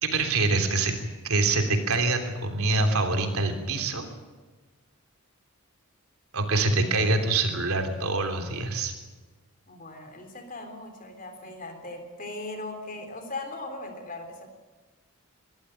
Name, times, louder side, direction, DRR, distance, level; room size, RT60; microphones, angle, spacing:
voice 1, 0.0-0.9 1.2-4.1 6.3-8.9, right 3 dB, 80° right, 5 dB, 3.2 m, -25 dB
voice 2, 9.7-14.5, left 2 dB, 40° left, 6 dB, 3.6 m, -39 dB
21.5 x 15.0 x 9.1 m, 1.3 s
head